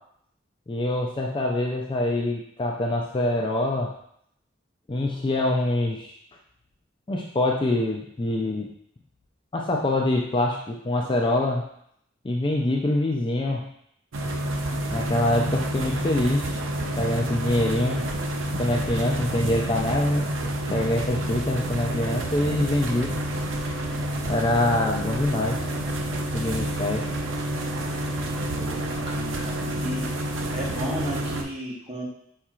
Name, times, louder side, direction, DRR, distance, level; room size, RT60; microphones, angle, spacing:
voice 1, 0.7-3.9 4.9-6.1 7.1-8.6 9.5-11.6 12.2-13.7 14.9-16.6 17.0-18.0 18.6-20.3 20.7-23.1 24.2-25.6 26.3-27.1, left 1 dB, 25° left, 0 dB, 0.4 m, -25 dB
sound 1, 14.1-31.4, right 1 dB, 85° right, 0.6 m, -29 dB
voice 2, 28.5-30.0 30.5-32.0, equal, 30° right, -4 dB, 1.1 m, -34 dB
4.8 x 4.3 x 2.4 m, 0.70 s
head